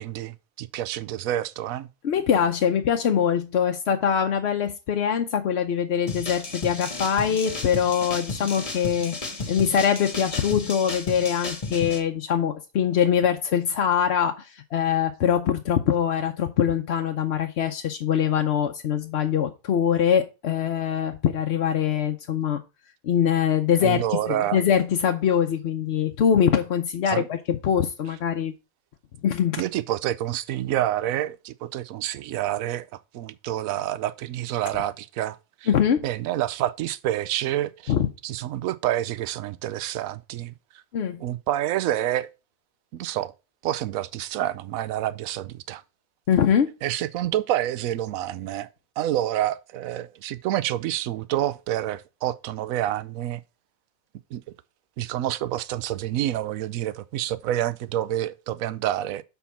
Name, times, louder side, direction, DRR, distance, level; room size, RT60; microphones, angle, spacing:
voice 1, 0.0-1.9 23.8-24.6 27.1-27.3 29.6-35.7 36.0-37.9 38.2-40.5 41.2-42.3 42.9-43.3 43.6-45.8 46.8-48.7 49.0-53.4 54.3-54.4 55.0-59.2, right 13 dB, 80° right, 1.0 m, -28 dB
voice 2, 2.0-9.2 9.5-22.6 23.0-28.5 29.2-29.6 35.7-36.1 37.9-38.1 40.9-41.2 46.3-46.7, left 8 dB, 60° left, 0.9 m, -23 dB
sound 1, 6.1-12.0, left 3 dB, 25° left, 1.1 m, -33 dB
7.0 x 4.4 x 5.6 m
omnidirectional pair, 1.4 m